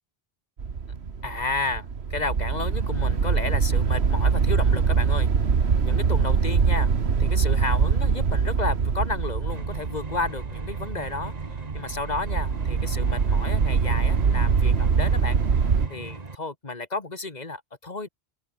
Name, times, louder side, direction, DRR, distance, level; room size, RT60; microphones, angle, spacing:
sound 1, 0.6-15.9, right 5 dB, 85° right, 1.7 m, -23 dB
voice 1, 1.2-5.3 5.8-6.9 7.2-15.4 15.9-18.1, left 3 dB, 40° left, 2.3 m, -32 dB
sound 2, 9.5-16.3, right 3 dB, 40° right, 1.7 m, -38 dB
open air
omnidirectional pair, 1.1 m